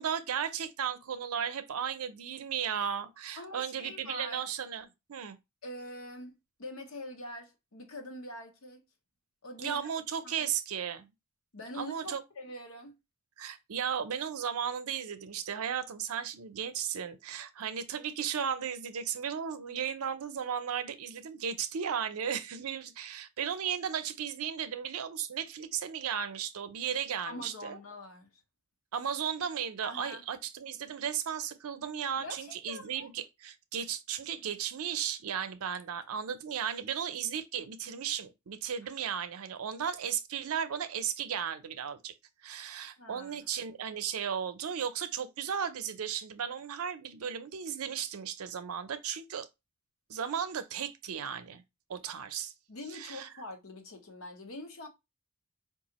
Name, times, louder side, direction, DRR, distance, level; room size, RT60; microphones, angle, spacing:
voice 1, 0.0-5.4 9.6-11.1 11.7-12.2 13.4-27.8 28.9-42.1 42.4-49.5 50.1-51.6 51.9-52.5 52.9-53.3, right 8 dB, 75° right, 0.5 m, -35 dB
voice 2, 3.4-4.4 5.6-8.8 9.4-9.8 10.2-10.3 11.5-13.0 27.2-28.3 29.8-30.2 32.2-33.1 43.0-43.4 52.7-54.9, left 1 dB, 70° left, 1.0 m, -44 dB
4.7 x 2.4 x 2.9 m
head